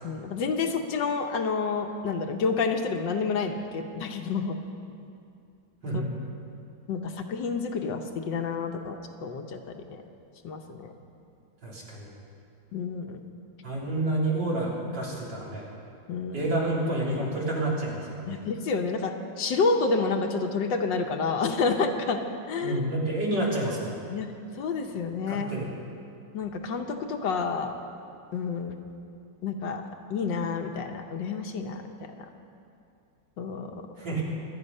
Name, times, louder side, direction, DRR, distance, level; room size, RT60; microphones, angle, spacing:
voice 1, 0.0-4.6 6.9-10.0 10.4-10.9 12.7-13.2 16.1-16.5 18.3-22.2 22.5-22.8 24.1-24.3 24.6-25.5 26.3-27.8 28.3-28.8 29.4-29.8 30.1-32.3 33.4-33.7, left 4 dB, 70° left, 4 dB, 1.6 m, -29 dB
voice 2, 11.6-12.1 13.6-15.7 16.3-18.4 22.6-23.9 25.3-25.7 34.0-34.2, right 1 dB, 60° right, -5 dB, 3.9 m, -29 dB
25.5 x 9.4 x 5.5 m, 2.5 s
omnidirectional pair, 2.1 m